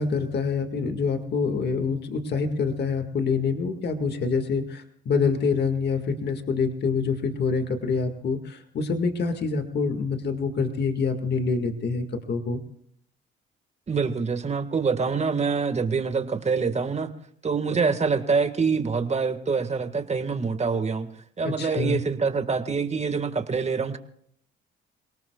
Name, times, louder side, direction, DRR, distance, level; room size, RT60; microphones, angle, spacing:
voice 1, 0.0-12.6 21.6-22.0, left 4 dB, 55° left, 6 dB, 2.0 m, -26 dB
voice 2, 13.9-17.1 17.4-21.1 21.4-24.0, right 5 dB, 35° right, 8 dB, 1.8 m, -25 dB
29.5 x 18.5 x 2.4 m, 0.65 s
cardioid pair, 90°, 20 cm